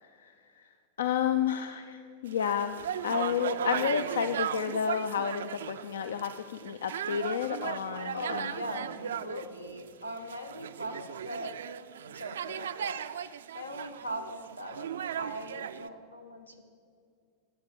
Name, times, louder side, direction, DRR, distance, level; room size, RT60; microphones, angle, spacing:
voice 1, 0.0-0.6 1.0-2.8 3.0-8.5, left 8 dB, 65° left, 10 dB, 0.4 m, -31 dB
sound 1, 2.3-15.9, right 9 dB, 65° right, 0.3 m, -37 dB
voice 2, 8.1-11.6 12.1-16.6, equal, 85° left, 5 dB, 1.0 m, -40 dB
12.5 x 8.8 x 6.0 m, 2.3 s
figure-of-eight pair, 90°, 0 cm